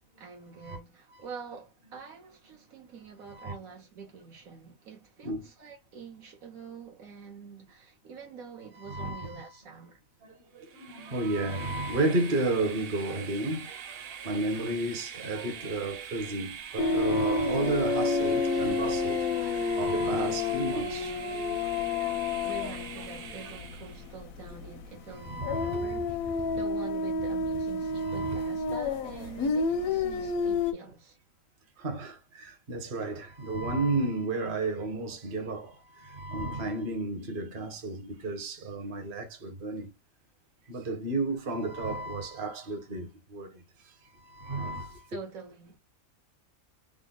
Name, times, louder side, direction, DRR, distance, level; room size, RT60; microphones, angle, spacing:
voice 1, 0.2-10.0 22.4-31.2 45.1-45.8, right 5 dB, 85° right, 1.6 m, -46 dB
voice 2, 8.7-9.5 10.2-13.7 14.0-21.2 25.1-26.0 26.4-26.6 27.9-28.5 31.8-39.9 40.7-43.6 44.1-45.1, right 2 dB, 45° right, 1.0 m, -33 dB
Train, 10.6-24.1, right 8 dB, 60° right, 0.6 m, -43 dB
sound 1, 16.8-24.2 24.5-24.7 25.4-30.7, left 3 dB, 85° left, 1.0 m, -29 dB
3.7 x 2.1 x 3.7 m
omnidirectional pair, 1.4 m